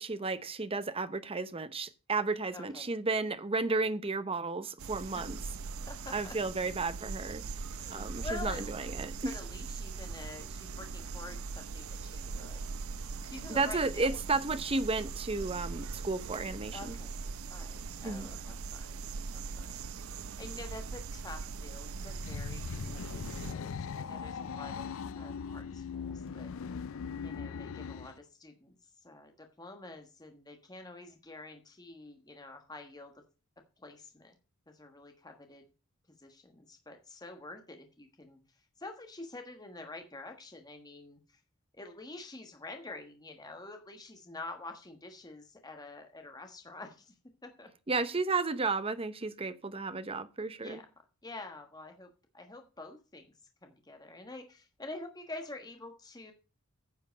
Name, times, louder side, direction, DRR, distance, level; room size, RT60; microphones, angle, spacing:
voice 1, 0.0-5.4 6.1-7.4 7.9-9.3 13.5-17.0 18.0-18.3 47.9-50.8, right 3 dB, 25° right, 0.8 m, -33 dB
voice 2, 2.5-2.9 5.1-5.3 5.9-6.4 7.7-8.8 9.2-12.6 13.3-14.2 16.7-17.2 17.5-19.0 19.3-26.8 27.2-28.7 29.0-33.2 33.8-34.4 34.7-35.6 36.2-38.4 38.8-41.4 41.8-47.1 47.4-47.7 48.0-48.1 50.6-50.9 51.2-52.1 52.3-53.3 53.6-56.3, left 2 dB, 20° left, 1.3 m, -47 dB
sound 1, 4.8-23.5, right 4 dB, 70° right, 0.6 m, -41 dB
sound 2, 21.9-28.2, left 6 dB, 65° left, 0.4 m, -40 dB
9.6 x 7.7 x 5.1 m
head